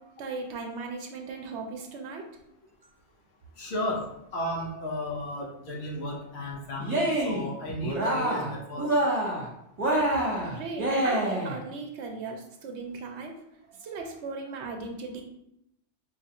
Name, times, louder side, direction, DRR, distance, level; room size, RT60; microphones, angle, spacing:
voice 1, 0.0-2.3 10.4-13.3 13.7-15.2, right 4 dB, 70° right, 3 dB, 0.8 m, -38 dB
voice 2, 3.6-4.1 4.3-8.9, left 1 dB, 65° left, -3 dB, 1.1 m, -34 dB
Cheering, 6.8-7.5 7.8-8.5 8.8-9.4 9.8-11.6, right 1 dB, 35° right, 1.2 m, -26 dB
4.7 x 2.4 x 2.8 m, 0.81 s
omnidirectional pair, 1.2 m